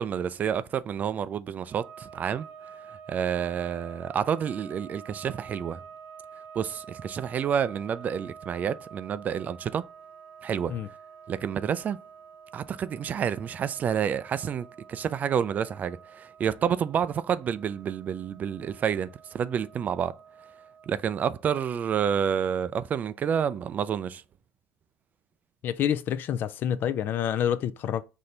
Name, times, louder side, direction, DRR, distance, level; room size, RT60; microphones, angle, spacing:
voice 1, 0.0-2.5 3.1-5.8 6.6-9.8 10.4-10.7 11.3-12.0 12.5-20.1 20.9-24.2, right 8 dB, 40° right, 0.3 m, -29 dB
sound 1, 1.6-21.3, right 7 dB, 65° right, 0.9 m, -48 dB
voice 2, 25.6-28.0, left 9 dB, 50° left, 0.3 m, -28 dB
4.2 x 2.7 x 3.2 m
supercardioid pair, 100°, 4 cm